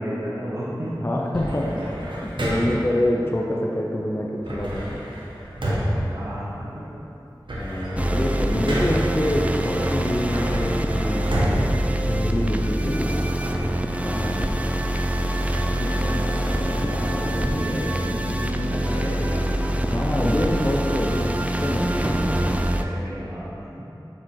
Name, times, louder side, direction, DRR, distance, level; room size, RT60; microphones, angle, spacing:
voice 1, 0.0-1.0 5.6-5.7 6.0-6.8 7.9-8.2 8.6-8.7 13.0-13.1 15.5-19.7 21.9-23.9, equal, 40° right, -9 dB, 1.4 m, -32 dB
voice 2, 1.0-5.1 7.6-11.3 12.0-13.7 14.0-14.9 19.9-22.1 23.7-23.9, left 1 dB, 30° left, -2 dB, 0.6 m, -26 dB
sound 1, 1.3-3.0 4.4-6.9 7.2-9.2 9.7-12.8, equal, 80° right, 1.1 m, -29 dB
sound 2, 8.0-22.8, right 1 dB, 15° right, 0.4 m, -25 dB
sound 3, 15.1-21.3, left 2 dB, 90° left, 0.4 m, -38 dB
7.1 x 4.8 x 4.7 m, 3.0 s
wide cardioid pair, 45°, 8 cm